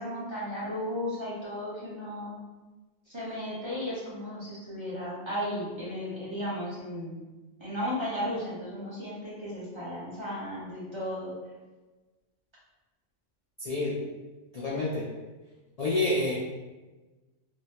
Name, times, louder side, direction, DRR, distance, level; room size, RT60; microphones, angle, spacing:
voice 1, 0.0-2.4 3.1-7.2 7.6-11.3, equal, 25° right, -8 dB, 0.9 m, -35 dB
voice 2, 13.6-13.9 14.5-15.0 15.8-16.3, left 2 dB, 60° left, -6 dB, 0.4 m, -28 dB
3.5 x 2.2 x 2.8 m, 1.2 s
omnidirectional pair, 1.3 m